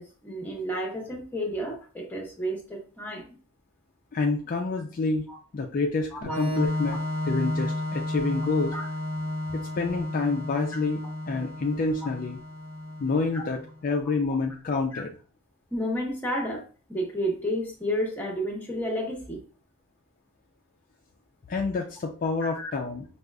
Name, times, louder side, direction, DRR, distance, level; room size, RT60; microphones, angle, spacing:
voice 1, 0.0-3.3 5.3-5.4 6.1-6.4 8.7-8.9 12.0-12.1 13.3-13.4 14.9-15.0 15.7-16.6 16.9-19.4 22.4-22.7, equal, 10° left, 1 dB, 0.8 m, -31 dB
voice 2, 4.1-5.2 5.5-7.0 7.3-8.7 9.5-11.0 11.3-12.4 13.0-15.1 21.5-23.1, left 3 dB, 40° left, 2 dB, 0.4 m, -28 dB
Organ, 6.2-13.7, left 1 dB, 75° right, 0.7 m, -32 dB
4.8 x 2.4 x 2.2 m, 0.37 s
head